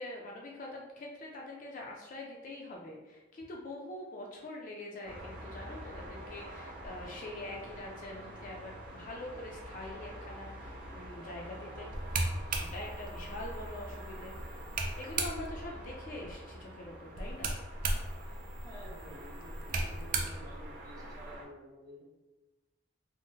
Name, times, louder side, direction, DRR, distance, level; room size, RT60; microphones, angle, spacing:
voice 1, 0.0-11.9 12.5-14.3 15.0-17.5, left 1 dB, 45° left, -1 dB, 0.4 m, -44 dB
sound 1, 5.0-21.4, right 1 dB, 70° right, 1.1 m, -46 dB
sound 2, 11.9-15.7 17.1-21.3, right 2 dB, 45° right, 0.4 m, -37 dB
voice 2, 18.6-22.0, equal, 20° right, -6 dB, 1.0 m, -51 dB
3.5 x 2.1 x 2.7 m, 1.1 s
head